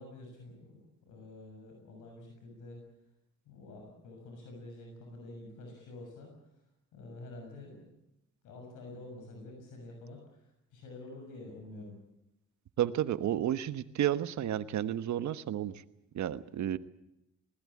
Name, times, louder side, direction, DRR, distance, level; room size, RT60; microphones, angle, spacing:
voice 1, 0.0-2.8 3.5-6.3 6.9-7.9 8.4-12.0, left 2 dB, 85° left, 2 dB, 6.8 m, -48 dB
voice 2, 12.8-15.7 16.1-16.8, right 11 dB, 70° right, 13 dB, 1.3 m, -31 dB
20.5 x 19.5 x 8.6 m, 0.86 s
cardioid pair, 90°, 30 cm